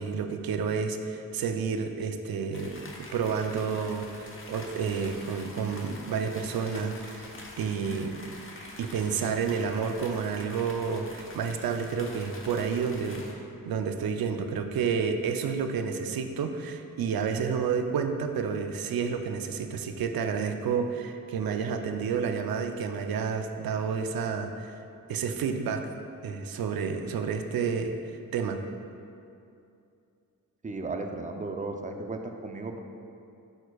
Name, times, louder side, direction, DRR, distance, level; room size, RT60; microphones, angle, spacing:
voice 1, 0.0-7.2 7.6-8.2 8.8-13.3 13.7-24.7 25.1-25.9 26.2-28.7, right 6 dB, 90° right, 6 dB, 0.5 m, -30 dB
sound 1, 2.5-13.3, left 2 dB, 35° left, 1.0 m, -45 dB
voice 2, 30.6-32.8, right 3 dB, 20° right, 4 dB, 0.5 m, -35 dB
10.5 x 4.4 x 2.3 m, 2.6 s
cardioid pair, 70°, 34 cm